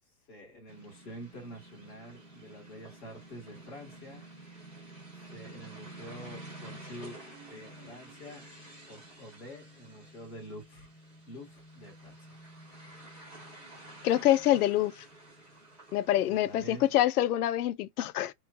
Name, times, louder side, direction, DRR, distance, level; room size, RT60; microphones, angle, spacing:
voice 1, 0.3-4.3 5.3-7.2 7.5-8.5 8.9-10.9 11.3-12.3 16.3-16.9, equal, 20° left, 1.4 m, -47 dB
sound 1, 0.7-17.1, right 1 dB, ahead, 1.1 m, -50 dB
voice 2, 14.0-15.0 15.9-18.3, left 13 dB, 75° left, 0.5 m, -26 dB
3.1 x 2.2 x 2.3 m
supercardioid pair, 180°, 46 cm